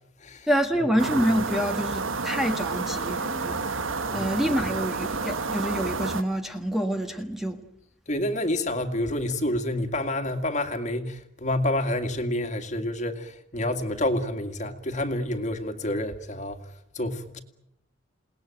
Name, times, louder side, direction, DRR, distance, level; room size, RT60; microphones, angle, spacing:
voice 1, 0.5-3.6 4.1-7.6, equal, ahead, 1.5 m, -27 dB
sound 1, 1.0-6.2, right 4 dB, 80° right, 1.4 m, -30 dB
voice 2, 4.1-4.4 8.1-16.6 16.9-17.4, left 1 dB, 35° left, 2.1 m, -28 dB
28.5 x 19.5 x 9.1 m
head